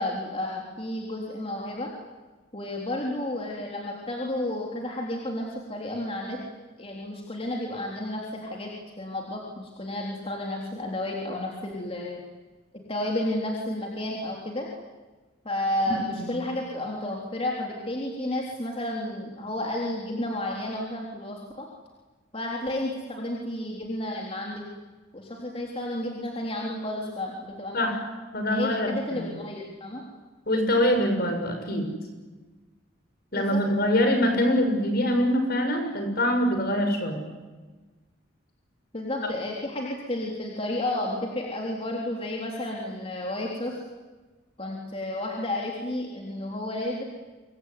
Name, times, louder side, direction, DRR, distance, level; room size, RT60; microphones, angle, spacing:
voice 1, 0.0-1.9 2.5-6.4 6.8-12.2 12.9-14.7 15.5-21.7 22.3-24.6 25.1-27.8 28.5-30.0 33.3-33.6 38.9-43.8 44.6-47.0, left 1 dB, 30° left, -1 dB, 3.6 m, -32 dB
voice 2, 28.3-29.3 30.5-31.9 33.3-37.2, equal, 50° left, 5 dB, 6.5 m, -24 dB
26.0 x 23.5 x 9.7 m, 1.3 s
head